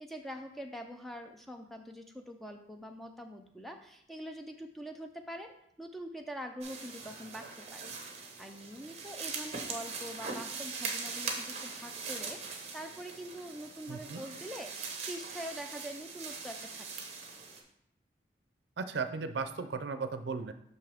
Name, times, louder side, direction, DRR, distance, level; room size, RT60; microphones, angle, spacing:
voice 1, 0.0-5.5 5.8-17.1, equal, ahead, 4 dB, 0.4 m, -44 dB
sound 1, 6.6-17.6, right 4 dB, 35° right, 0.9 m, -41 dB
voice 2, 13.9-14.2 18.8-20.5, right 4 dB, 75° right, 10 dB, 0.5 m, -36 dB
5.9 x 5.5 x 3.5 m, 0.74 s
head